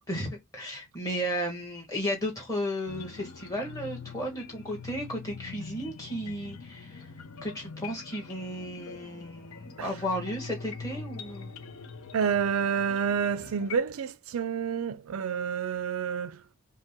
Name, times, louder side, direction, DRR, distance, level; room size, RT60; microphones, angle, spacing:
voice 1, 0.1-7.1 7.4-11.5, equal, 15° left, 1.4 m, -34 dB
sound 1, 2.9-13.8, left 5 dB, 75° left, 0.7 m, -44 dB
voice 2, 12.1-16.3, right 7 dB, 75° right, 0.4 m, -28 dB
5.2 x 2.2 x 3.5 m
head